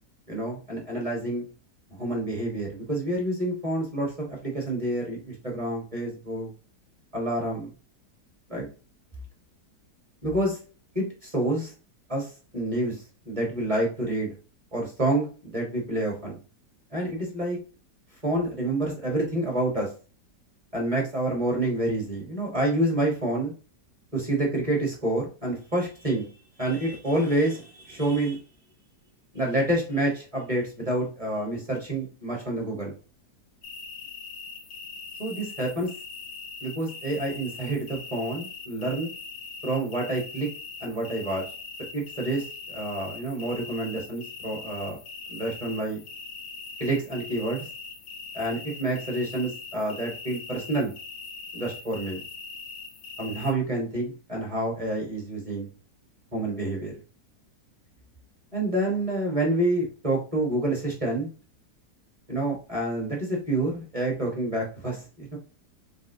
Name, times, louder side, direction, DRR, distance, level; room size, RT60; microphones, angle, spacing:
voice 1, 0.3-1.4 1.9-6.5 7.1-7.7 8.5-8.7 10.2-10.6 10.9-11.7 12.1-14.3 14.7-16.4 16.9-17.6 18.2-19.9 20.7-23.5 24.1-26.3 26.6-28.4 29.3-32.9 35.2-35.9 36.6-39.1 39.6-40.5 40.8-41.4 41.9-45.0 45.3-46.0 46.8-47.6 48.3-50.9 51.5-52.2 53.2-55.7 56.3-56.9 58.5-61.3 62.3-65.4, right 1 dB, 25° right, -2 dB, 0.9 m, -28 dB
sound 1, 33.6-53.5, left 4 dB, 70° left, 0.7 m, -41 dB
4.2 x 2.1 x 2.6 m, 0.35 s
omnidirectional pair, 1.8 m